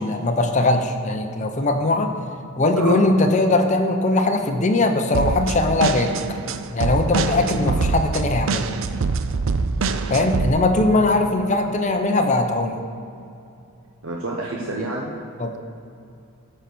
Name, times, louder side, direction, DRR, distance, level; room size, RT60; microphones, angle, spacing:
voice 1, 0.0-2.1 2.6-6.1 6.7-8.7 10.1-12.9 15.4-15.5, left 2 dB, 35° left, 5 dB, 0.7 m, -20 dB
sound 1, 5.1-10.5, right 4 dB, 65° right, 0.5 m, -24 dB
voice 2, 14.0-15.1, right 2 dB, 85° right, -2 dB, 1.0 m, -29 dB
12.5 x 4.4 x 6.9 m, 2.7 s
head